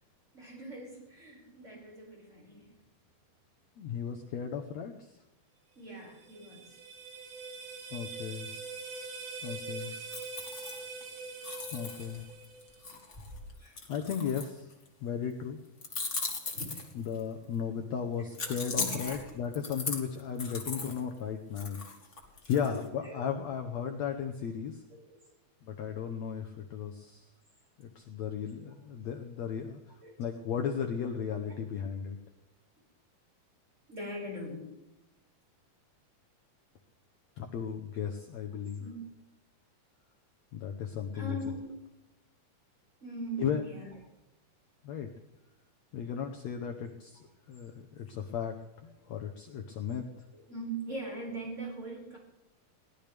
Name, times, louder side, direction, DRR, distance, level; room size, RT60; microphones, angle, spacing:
voice 1, 0.3-2.8 5.8-6.7 13.6-13.8 14.2-14.3 16.5-16.7 18.2-19.4 22.4-23.2 24.9-25.2 30.0-30.1 31.5-31.6 33.9-34.7 38.0-38.1 38.5-39.1 41.1-41.7 43.0-43.9 50.3-52.2, right 1 dB, 15° right, -3 dB, 6.1 m, -42 dB
voice 2, 3.8-4.9 7.9-8.5 9.4-9.9 11.7-12.2 13.9-14.7 15.0-15.6 16.9-21.8 22.5-24.8 25.6-27.2 27.8-29.8 30.2-32.2 37.4-38.8 40.5-41.4 43.4-43.6 44.8-45.1 45.9-48.6 48.8-50.0, left 7 dB, 75° left, 4 dB, 1.6 m, -35 dB
sound 1, 5.9-13.0, right 4 dB, 60° right, 3.0 m, -43 dB
sound 2, 9.8-11.1 11.4-14.9 15.8-17.2 18.3-21.0 21.6-22.8, left 3 dB, 30° left, 1.4 m, -38 dB
22.5 x 17.5 x 3.5 m, 0.92 s
omnidirectional pair, 4.5 m